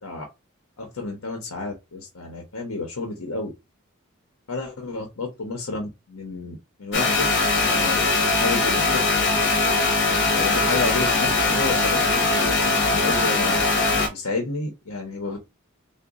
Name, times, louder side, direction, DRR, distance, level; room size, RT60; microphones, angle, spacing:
voice 1, 0.8-3.5 4.5-7.3 7.6-8.0 8.3-9.2 10.3-13.6 14.1-15.4, left 3 dB, 90° left, 0.9 m, -31 dB
sound 1, 6.9-14.1, left 3 dB, 55° left, 1.3 m, -21 dB
4.0 x 2.3 x 3.5 m
head